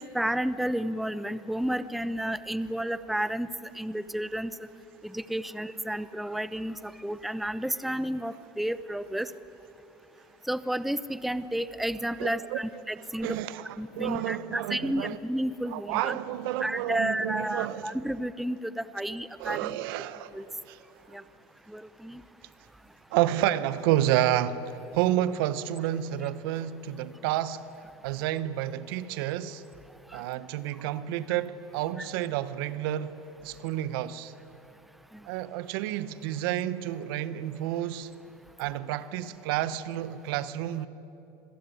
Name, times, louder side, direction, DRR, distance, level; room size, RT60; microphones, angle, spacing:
voice 1, 0.0-4.6 5.0-9.3 10.5-13.4 13.8-16.2 16.6-19.8 20.3-20.5 21.1-21.2 21.7-22.2 30.1-30.2 32.0-32.1 35.1-35.2, right 1 dB, ahead, 0.7 m, -31 dB
voice 2, 12.2-12.6 13.2-15.2 15.7-18.0 19.4-20.3 20.7-20.8 23.1-24.6 24.9-27.6 28.0-29.6 30.1-33.1 33.4-34.3 35.2-38.1 38.6-40.9, right 12 dB, 70° right, 1.0 m, -30 dB
25.5 x 15.5 x 9.9 m
hypercardioid pair, 95°, 12 cm